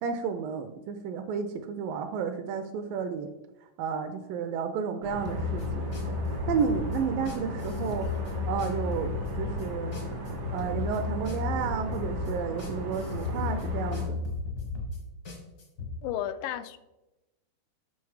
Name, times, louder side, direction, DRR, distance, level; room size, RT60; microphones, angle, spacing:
voice 1, 0.0-3.3 3.8-6.2 6.5-10.0 10.5-14.2, right 6 dB, 80° right, 8 dB, 2.1 m, -32 dB
sound 1, 5.0-14.0, left 1 dB, 60° right, 0.9 m, -36 dB
sound 2, 5.2-15.9, left 2 dB, 60° left, 1.0 m, -34 dB
voice 2, 16.0-16.8, left 11 dB, 80° left, 12 dB, 2.1 m, -33 dB
7.2 x 6.3 x 4.7 m, 0.99 s
omnidirectional pair, 4.3 m